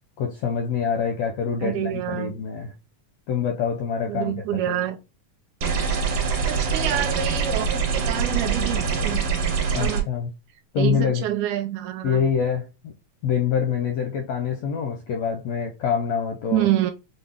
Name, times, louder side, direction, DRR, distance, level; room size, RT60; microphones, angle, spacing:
voice 1, 0.2-2.7 3.3-4.8 9.7-10.3 10.7-11.2 12.0-12.9 13.2-16.7, left 7 dB, 80° left, 1.5 m, -25 dB
voice 2, 1.6-2.3 4.1-5.0 6.4-9.2 9.8-10.1 10.8-12.2 16.5-16.9, right 12 dB, 80° right, 1.9 m, -27 dB
sound 1, 5.6-10.0, right 5 dB, 60° right, 1.8 m, -24 dB
5.8 x 2.1 x 3.4 m
omnidirectional pair, 3.6 m